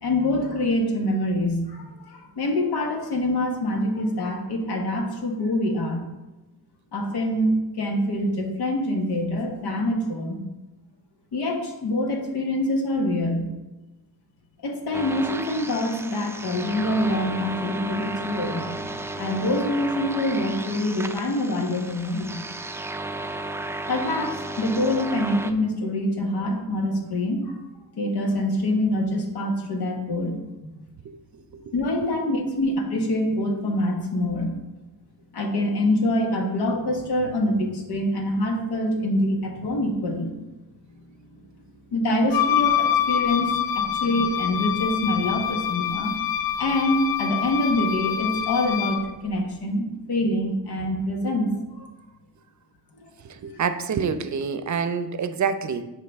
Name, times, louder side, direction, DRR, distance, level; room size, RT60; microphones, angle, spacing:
voice 1, 0.0-6.0 6.9-10.4 11.3-13.5 14.6-22.4 23.9-27.6 28.0-30.4 31.7-34.5 35.3-40.4 40.9-41.4 41.9-46.1 46.6-51.9 53.0-53.1, left 1 dB, 90° left, 2 dB, 1.3 m, -25 dB
sound 1, 14.9-25.5, right 2 dB, 5° right, 0.3 m, -34 dB
Wind instrument woodwind instrument, 42.3-49.1, left 10 dB, 65° left, 0.7 m, -25 dB
voice 2, 53.2-55.9, right 6 dB, 50° right, 11 dB, 0.6 m, -27 dB
9.9 x 4.8 x 3.5 m, 1.1 s
cardioid pair, 85°, 38 cm